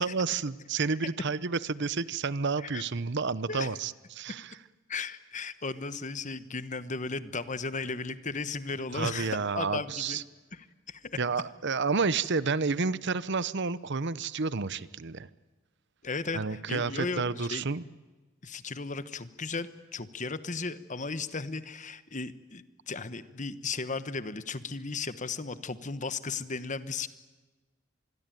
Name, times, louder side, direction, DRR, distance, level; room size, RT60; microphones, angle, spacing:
voice 1, 0.0-4.6 8.9-10.2 11.2-15.3 16.3-17.8, right 4 dB, 55° right, 17 dB, 0.8 m, -30 dB
voice 2, 4.9-10.2 10.5-11.2 16.0-17.6 18.4-27.1, left 4 dB, 35° left, 13 dB, 1.2 m, -35 dB
26.0 x 21.5 x 9.2 m, 1.2 s
head